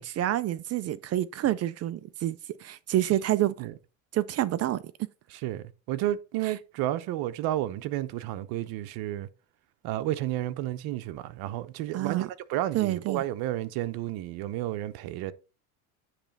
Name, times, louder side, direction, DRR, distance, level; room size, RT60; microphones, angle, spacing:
voice 1, 0.0-3.5 4.1-4.8 6.4-6.5 11.9-12.3 12.7-13.2, right 13 dB, 40° right, 0.5 m, -28 dB
voice 2, 5.3-9.3 9.8-15.3, right 14 dB, 60° right, 0.9 m, -31 dB
10.0 x 3.3 x 5.3 m
supercardioid pair, 95°, 40 cm